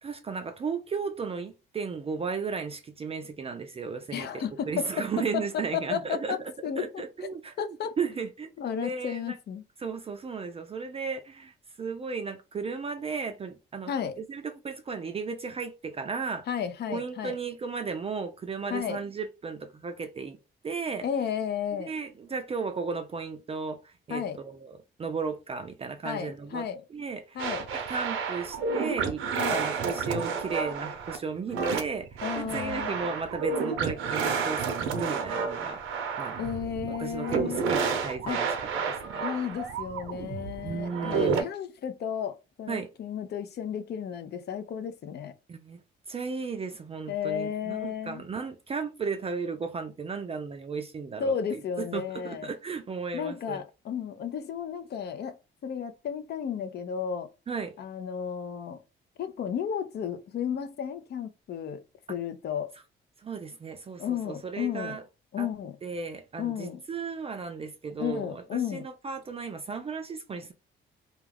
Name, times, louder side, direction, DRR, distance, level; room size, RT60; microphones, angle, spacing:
voice 1, 0.0-9.4 9.8-13.9 14.2-16.4 16.9-20.4 20.6-21.0 21.8-27.4 27.7-29.2 29.5-36.4 37.0-38.5 38.7-39.2 40.6-41.4 42.7-42.9 45.5-45.8 46.1-53.6 57.5-57.7 63.2-65.0 65.4-65.5 65.8-70.5, right 5 dB, 30° right, 0.4 m, -35 dB
voice 2, 4.1-7.0 7.6-7.9 8.6-9.6 13.9-14.1 16.5-17.4 18.7-19.0 21.0-21.9 24.1-24.4 26.0-26.8 27.3-27.7 29.4-29.6 32.2-33.0 36.4-37.6 38.3-38.4 39.2-45.3 47.1-48.2 51.2-52.5 53.1-55.4 55.6-57.3 57.8-58.8 59.2-61.8 62.1-62.7 64.0-65.0 65.3-65.7 66.4-66.8 68.0-68.8, left 8 dB, 55° left, 0.5 m, -33 dB
sound 1, 27.4-41.4, right 5 dB, 85° right, 0.6 m, -31 dB
2.3 x 2.3 x 3.3 m
cardioid pair, 90°, 20 cm